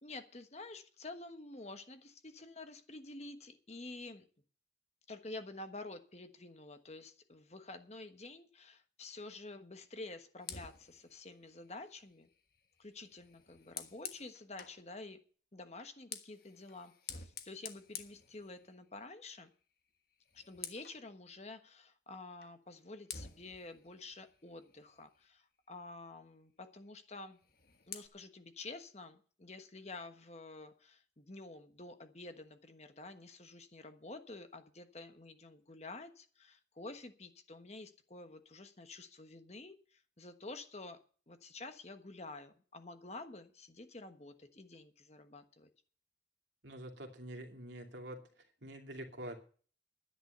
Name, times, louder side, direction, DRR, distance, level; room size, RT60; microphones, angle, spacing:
voice 1, 0.0-4.2 5.1-12.3 12.8-15.2 15.5-19.5 20.3-27.4 27.9-41.0 41.3-45.7, left 2 dB, 35° left, 8 dB, 1.3 m, -49 dB
Fire, 10.4-14.8 15.7-19.0 19.3-19.6 19.9-21.0 22.4-22.6 23.1-25.4 27.3-28.1, left 8 dB, 50° left, 1.4 m, -50 dB
voice 2, 46.6-48.2 48.6-49.4, right 1 dB, 70° right, 3 dB, 2.6 m, -46 dB
11.5 x 9.9 x 6.7 m, 0.42 s
head